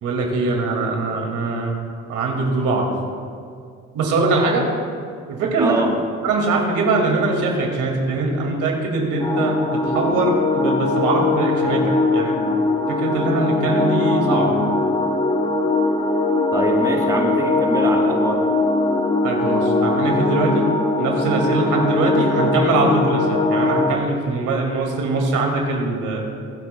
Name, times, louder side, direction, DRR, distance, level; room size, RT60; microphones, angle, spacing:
voice 1, 0.0-1.8 2.1-2.9 3.9-4.6 5.3-5.8 6.2-11.8 12.1-12.3 12.9-14.5 19.2-20.7 21.0-26.2, right 3 dB, 85° right, 0 dB, 2.2 m, -22 dB
voice 2, 5.6-5.9 16.5-18.4, right 1 dB, 10° right, 0 dB, 1.3 m, -24 dB
sound 1, 9.2-24.0, left 2 dB, 20° left, 1.7 m, -20 dB
24.0 x 8.4 x 2.3 m, 2.2 s
cardioid pair, 90°, 30 cm